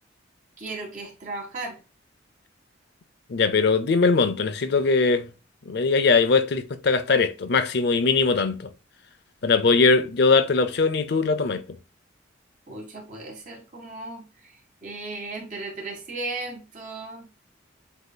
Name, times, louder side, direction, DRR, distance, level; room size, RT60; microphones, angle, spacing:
voice 1, 0.6-1.8 12.7-17.3, right 2 dB, 40° right, 1.8 m, -36 dB
voice 2, 3.3-5.3 5.7-8.7 9.4-11.6, left 4 dB, 60° left, 0.5 m, -21 dB
8.0 x 2.8 x 2.2 m
head